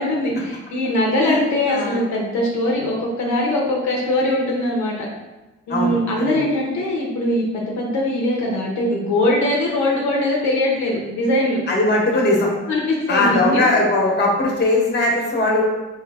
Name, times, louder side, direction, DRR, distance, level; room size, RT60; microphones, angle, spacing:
voice 1, 0.0-5.1 5.7-11.6 12.7-13.7, left 1 dB, 70° left, -2 dB, 0.9 m, -21 dB
voice 2, 1.7-2.0 5.7-6.4 11.7-12.5 13.1-15.6, left 2 dB, 35° left, -2 dB, 1.2 m, -19 dB
3.2 x 3.1 x 3.5 m, 1.1 s
cardioid pair, 90°, 30 cm